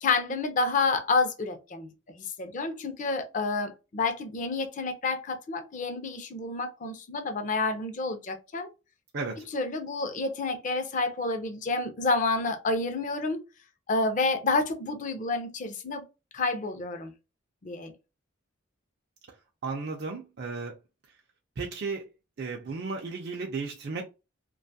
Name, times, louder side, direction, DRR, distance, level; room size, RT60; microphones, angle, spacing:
voice 1, 0.0-1.9 2.2-8.7 9.5-13.4 13.9-16.0 16.3-17.1 17.6-17.9, left 3 dB, 40° left, 0.5 m, -29 dB
voice 2, 19.6-20.7 21.6-22.0 22.4-24.0, right 4 dB, 55° right, 0.4 m, -34 dB
2.5 x 2.3 x 2.6 m
head